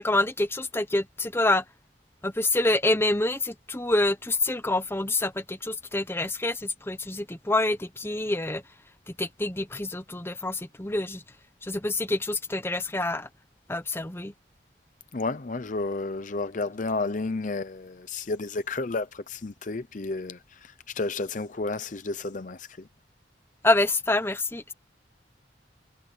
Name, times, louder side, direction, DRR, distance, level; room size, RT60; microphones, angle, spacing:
voice 1, 0.0-1.6 2.2-8.6 9.2-11.2 11.6-13.3 13.7-14.3 23.6-24.7, left 2 dB, 15° left, 1.0 m, -26 dB
voice 2, 15.1-22.9, left 3 dB, 45° left, 0.6 m, -32 dB
head